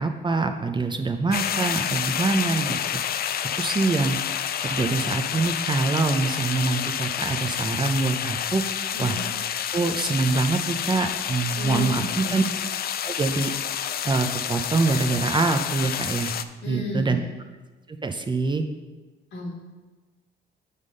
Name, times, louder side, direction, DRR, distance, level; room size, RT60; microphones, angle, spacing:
voice 1, 0.0-2.8 3.6-4.2 4.6-8.6 9.0-9.2 9.7-12.4 13.0-13.5 14.0-16.3 16.7-17.2 17.9-18.6, right 3 dB, 25° right, 5 dB, 0.6 m, -24 dB
sound 1, 1.3-16.4, left 9 dB, 50° left, 0.4 m, -29 dB
voice 2, 8.9-9.3 11.5-12.5 16.6-17.3 19.3-19.5, left 1 dB, 65° left, -2 dB, 1.9 m, -32 dB
8.1 x 3.6 x 6.5 m, 1.3 s
cardioid pair, 90°, 20 cm